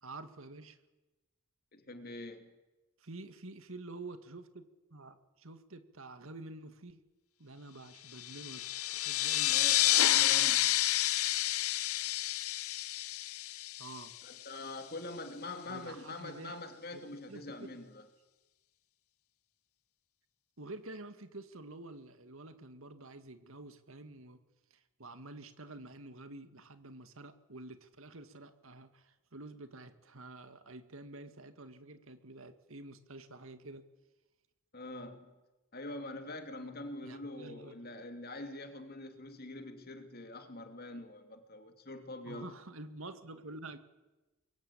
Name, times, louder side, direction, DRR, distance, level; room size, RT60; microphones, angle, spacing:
voice 1, 0.0-0.8 3.0-7.0 7.4-9.6 13.8-14.1 15.7-16.6 16.9-17.0 17.3-17.7 20.6-24.4 24.7-33.9 37.0-37.8 42.2-43.8, right 2 dB, 70° right, 10 dB, 2.1 m, -49 dB
voice 2, 1.7-2.5 9.5-10.7 14.2-18.1 34.7-35.3 35.7-42.5, left 2 dB, 45° left, 6 dB, 2.8 m, -44 dB
sound 1, 8.2-14.4, left 14 dB, 80° left, 0.8 m, -30 dB
25.5 x 22.5 x 8.6 m, 1.1 s
head